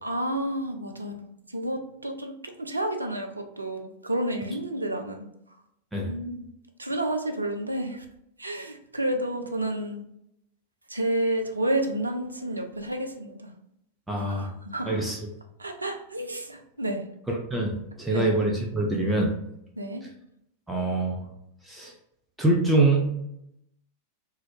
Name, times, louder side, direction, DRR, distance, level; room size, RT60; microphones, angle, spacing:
voice 1, 0.0-5.3 6.1-6.5 6.8-8.0 8.4-10.0 10.9-13.5 14.2-15.0 15.6-17.0 18.1-18.3 19.8-20.0, right 1 dB, 80° right, 4 dB, 0.3 m, -30 dB
voice 2, 14.1-14.5 14.9-15.2 17.3-17.7 18.0-19.3 20.7-21.2 21.7-21.9 22.4-23.1, right 2 dB, 5° right, -2 dB, 0.5 m, -24 dB
2.3 x 2.0 x 3.0 m, 0.79 s
figure-of-eight pair, 90°, 0 cm